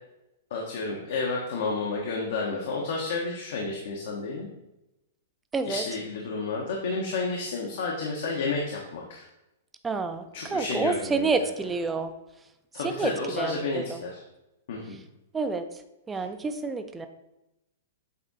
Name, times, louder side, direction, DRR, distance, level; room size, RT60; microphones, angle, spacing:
voice 1, 0.5-4.5 5.6-9.3 10.3-11.3 12.7-14.2 14.7-15.0 16.1-16.2, left 3 dB, 65° left, -1 dB, 1.2 m, -31 dB
voice 2, 5.5-5.8 9.8-12.1 12.8-14.0 15.3-15.7 16.1-17.1, right 4 dB, 15° right, 8 dB, 0.5 m, -29 dB
8.3 x 3.6 x 4.2 m, 0.93 s
hypercardioid pair, 140°, 0 cm